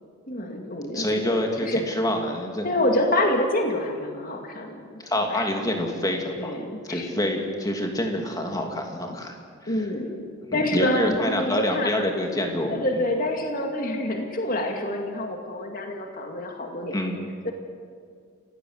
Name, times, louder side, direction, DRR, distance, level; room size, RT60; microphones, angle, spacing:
voice 1, 0.3-1.8 2.6-4.9 5.3-5.4 6.4-7.2 9.7-11.9 12.7-17.0 17.4-17.5, left 1 dB, 40° left, 2 dB, 2.3 m, -27 dB
voice 2, 0.9-2.7 5.0-6.5 6.9-9.4 9.6-9.7 10.5-13.1 16.9-17.3, left 1 dB, 15° left, 2 dB, 2.6 m, -27 dB
29.0 x 16.5 x 8.1 m, 2.1 s
head